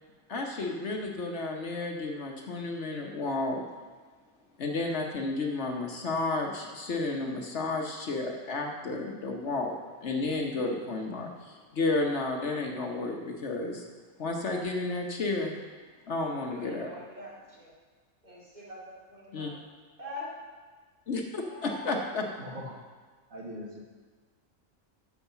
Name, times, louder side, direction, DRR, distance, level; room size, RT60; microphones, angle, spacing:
voice 1, 0.3-3.6 4.6-13.8 14.2-15.6 16.1-16.9 19.3-19.5 21.1-22.2, left 3 dB, 60° left, 1 dB, 1.2 m, -32 dB
voice 2, 16.4-17.7 18.2-19.7 20.0-20.3 21.4-21.8, left 1 dB, 35° right, -7 dB, 2.8 m, -44 dB
voice 3, 22.1-22.8 23.3-23.8, equal, 75° right, -2 dB, 2.0 m, -41 dB
11.0 x 4.7 x 7.0 m, 1.5 s
omnidirectional pair, 1.4 m